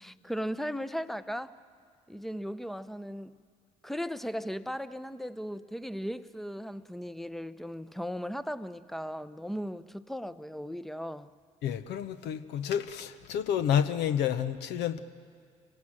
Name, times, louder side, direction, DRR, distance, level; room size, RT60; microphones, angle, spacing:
voice 1, 0.0-1.5 2.1-3.4 3.8-11.3, equal, ahead, 0.8 m, -37 dB
voice 2, 11.6-15.0, left 9 dB, 70° left, 0.9 m, -29 dB
26.5 x 17.0 x 7.5 m
hypercardioid pair, 55°, 18 cm